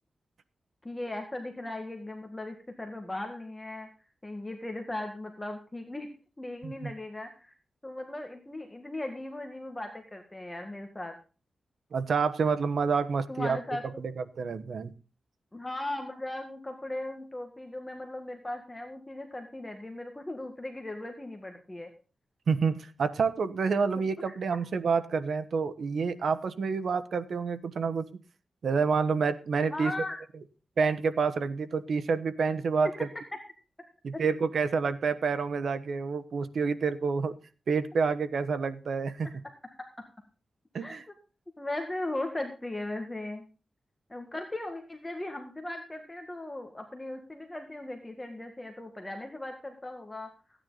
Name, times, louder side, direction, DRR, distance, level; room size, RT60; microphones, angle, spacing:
voice 1, 0.8-3.9 4.2-6.1 6.4-7.5 7.8-11.1 13.3-14.0 15.5-21.9 24.3-24.4 29.7-30.2 40.8-41.0 41.6-43.4 44.1-50.3, left 1 dB, 15° left, 4 dB, 1.8 m, -38 dB
voice 2, 11.9-13.6 13.8-14.9 22.5-28.0 28.6-29.9 30.8-33.1 34.0-37.3 37.7-39.3 40.7-41.0, right 5 dB, 70° right, 11 dB, 1.1 m, -28 dB
15.5 x 9.7 x 4.0 m, 0.36 s
wide cardioid pair, 115°, 0 cm